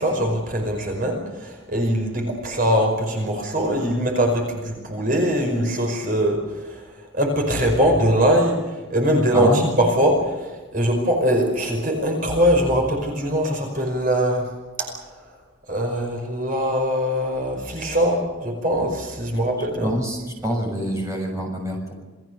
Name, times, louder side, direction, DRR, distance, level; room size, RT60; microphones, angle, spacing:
voice 1, 0.0-14.5 14.8-15.1 15.7-19.9, equal, 40° right, 2 dB, 5.2 m, -22 dB
voice 2, 9.3-9.7 19.8-21.9, equal, 15° right, 0 dB, 6.6 m, -25 dB
29.0 x 20.0 x 6.6 m, 1.2 s
head